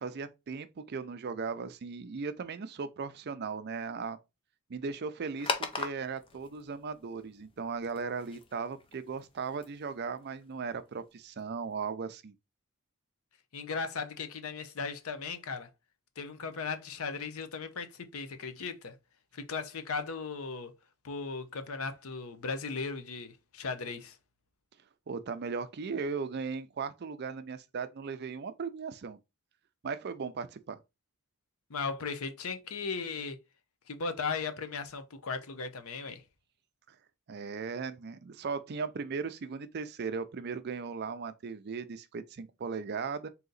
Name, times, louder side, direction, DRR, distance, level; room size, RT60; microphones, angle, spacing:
voice 1, 0.0-4.2 4.7-12.3 25.1-29.2 29.8-30.8 37.3-43.3, right 5 dB, 50° right, 0.4 m, -37 dB
sound 1, 5.4-11.4, left 4 dB, 25° left, 0.5 m, -41 dB
voice 2, 13.5-15.7 16.2-19.0 19.3-20.7 21.0-24.2 31.7-33.4 33.9-36.2, left 4 dB, 75° left, 0.7 m, -37 dB
3.8 x 2.8 x 3.9 m
head